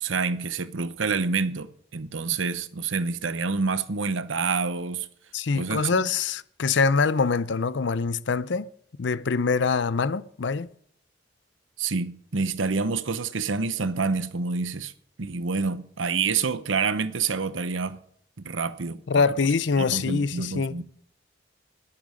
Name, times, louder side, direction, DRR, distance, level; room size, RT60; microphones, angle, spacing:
voice 1, 0.0-5.1 5.6-6.1 11.8-14.9 15.2-18.0 18.4-19.2 19.8-20.8, right 4 dB, 85° right, 1.0 m, -27 dB
voice 2, 5.3-8.7 9.0-10.7 19.1-20.8, left 4 dB, 65° left, 0.5 m, -24 dB
20.5 x 8.7 x 5.1 m
head